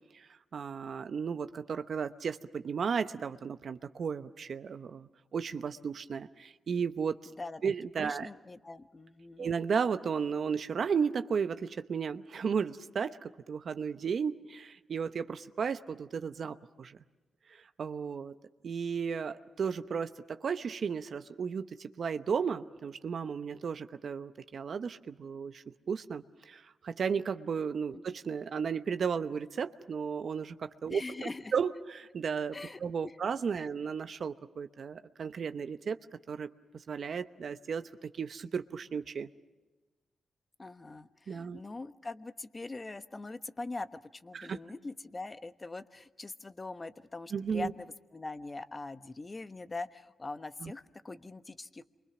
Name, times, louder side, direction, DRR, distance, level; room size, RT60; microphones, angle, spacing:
voice 1, 0.1-7.2 7.6-8.3 9.4-17.0 17.5-18.3 18.6-32.6 32.8-36.0 36.3-36.5 36.9-39.3 41.3-41.6 44.3-44.6 47.3-47.7 50.6-50.7, right 6 dB, 65° right, 10 dB, 0.9 m, -34 dB
voice 2, 7.4-7.7 8.0-9.5 27.9-28.0 30.9-31.5 32.5-33.1 33.6-33.7 40.6-51.9, left 3 dB, 30° left, 11 dB, 1.2 m, -42 dB
28.0 x 24.0 x 6.1 m, 1.2 s
cardioid pair, 60°, 0 cm